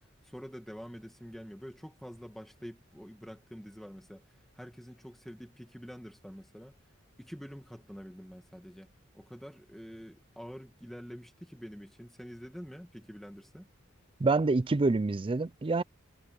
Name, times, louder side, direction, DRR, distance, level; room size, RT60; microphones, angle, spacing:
voice 1, 0.0-6.7 7.2-8.9 9.1-13.7, equal, ahead, 2.0 m, -47 dB
voice 2, 14.2-15.8, right 3 dB, 25° right, 0.4 m, -26 dB
head